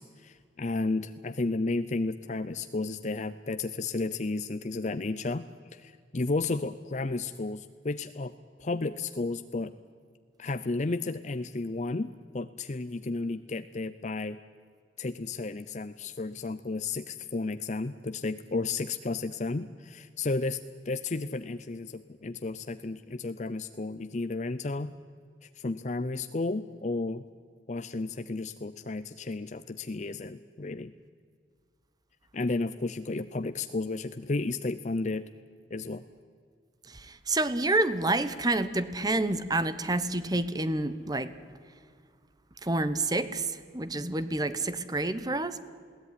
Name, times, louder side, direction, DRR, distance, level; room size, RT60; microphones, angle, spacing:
voice 1, 0.0-5.5 5.7-9.7 10.4-14.4 15.0-24.9 25.4-27.2 27.7-30.9 32.3-35.3 35.7-36.0, left 3 dB, 40° left, 12 dB, 0.6 m, -33 dB
voice 2, 36.9-41.3 42.6-45.6, right 2 dB, 20° right, 13 dB, 1.0 m, -28 dB
21.5 x 16.5 x 9.8 m, 2.1 s
head